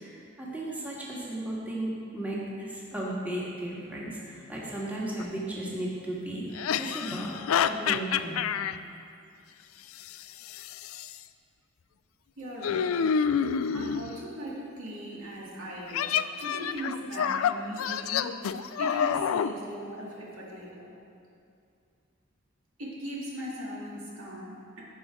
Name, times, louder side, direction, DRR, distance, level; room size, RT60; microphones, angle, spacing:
voice 1, 0.0-7.3 7.7-8.4, right 1 dB, 10° right, -6 dB, 1.7 m, -35 dB
sound 1, 5.2-5.3 6.5-8.8 10.0-11.2 12.6-14.1 15.9-19.5, left 7 dB, 80° left, 0.4 m, -28 dB
voice 2, 12.4-12.9 13.7-16.1 16.4-18.4 18.8-20.9 22.8-24.8, equal, 80° right, -5 dB, 2.4 m, -39 dB
16.5 x 5.5 x 4.8 m, 2.4 s
head